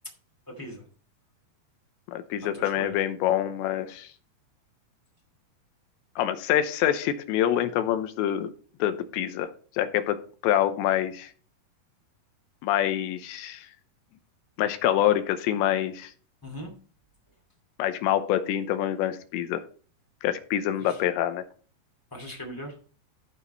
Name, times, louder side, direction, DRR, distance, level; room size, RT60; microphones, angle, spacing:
voice 1, 0.5-0.8 2.4-3.0 16.4-16.7 20.7-21.0 22.1-22.8, equal, 10° left, 0 dB, 0.9 m, -39 dB
voice 2, 2.1-4.1 6.2-8.5 8.8-9.5 9.8-10.2 10.4-11.3 12.6-13.7 14.6-16.1 17.8-19.6 20.2-21.4, left 11 dB, 85° left, 10 dB, 3.0 m, -26 dB
14.0 x 5.1 x 4.1 m, 0.42 s
omnidirectional pair, 5.1 m